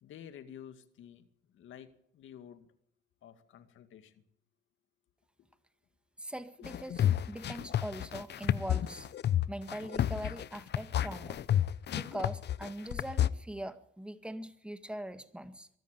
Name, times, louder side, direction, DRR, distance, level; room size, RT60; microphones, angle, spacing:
voice 1, 0.0-2.7 3.2-4.2, left 9 dB, 75° left, 9 dB, 2.2 m, -51 dB
voice 2, 6.2-9.1 9.5-11.4 11.9-15.7, right 1 dB, 5° right, 10 dB, 1.9 m, -42 dB
sound 1, 6.6-13.3, left 11 dB, 60° left, 0.9 m, -30 dB
23.5 x 13.5 x 9.2 m, 0.68 s
cardioid pair, 90°, 20 cm